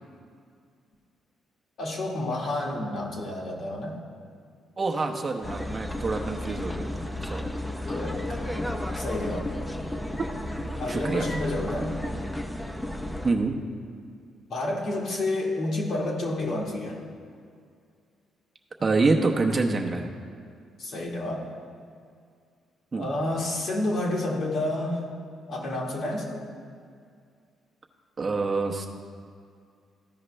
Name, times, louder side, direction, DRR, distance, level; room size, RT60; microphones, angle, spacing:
voice 1, 1.8-4.0 7.9-9.5 10.8-12.0 14.5-17.0 20.8-21.5 23.0-25.0 25.5-26.5, left 1 dB, 65° left, -2 dB, 1.8 m, -30 dB
voice 2, 4.8-7.5 10.6-11.3 13.2-13.6 18.8-20.1 22.9-23.1 28.2-28.9, right 3 dB, 35° right, 1 dB, 0.8 m, -26 dB
sound 1, 5.4-13.3, left 1 dB, 10° left, 0.6 m, -33 dB
14.5 x 5.0 x 3.3 m, 2.2 s
cardioid pair, 90°, 0 cm